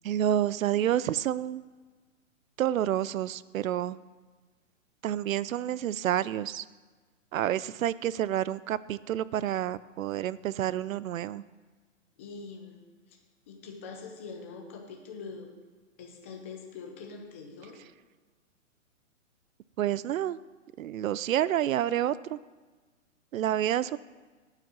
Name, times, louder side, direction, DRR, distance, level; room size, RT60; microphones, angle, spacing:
voice 1, 0.0-1.6 2.6-4.0 5.0-6.7 7.3-11.4 19.8-20.4 20.8-22.4 23.3-24.0, right 11 dB, 90° right, 18 dB, 0.5 m, -29 dB
voice 2, 12.2-12.8 13.1-13.2 13.5-15.5 16.0-17.8, left 4 dB, 10° left, 2 dB, 0.4 m, -43 dB
9.1 x 5.7 x 7.3 m, 1.3 s
hypercardioid pair, 150°, 39 cm